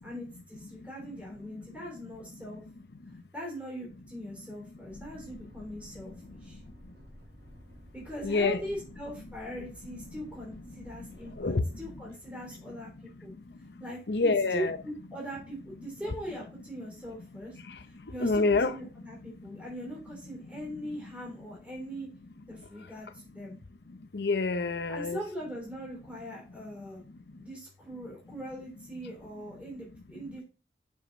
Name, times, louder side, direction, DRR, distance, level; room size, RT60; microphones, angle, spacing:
voice 1, 0.0-2.6 3.3-6.6 7.9-13.3 13.8-14.0 14.5-22.1 22.5-23.6 24.9-27.0 27.4-30.4, equal, 10° right, 3.3 m, -41 dB
sound 1, 4.9-12.0, equal, 75° right, 4.4 m, -52 dB
voice 2, 8.2-8.6 10.1-10.2 10.5-10.6 11.3-11.9 14.1-14.8 17.6-17.8 18.2-18.8 24.1-25.2, left 3 dB, 70° left, 0.7 m, -27 dB
7.0 x 5.6 x 3.9 m
head